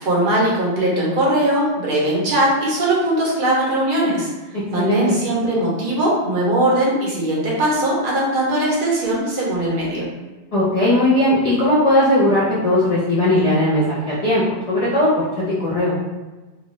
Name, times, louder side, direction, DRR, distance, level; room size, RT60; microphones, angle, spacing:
voice 1, 0.0-4.3 4.7-10.1, right 1 dB, 55° right, -5 dB, 0.9 m, -20 dB
voice 2, 4.8-5.2 10.5-15.9, left 1 dB, 40° left, -8 dB, 0.6 m, -18 dB
2.5 x 2.3 x 3.0 m, 1.2 s
omnidirectional pair, 1.2 m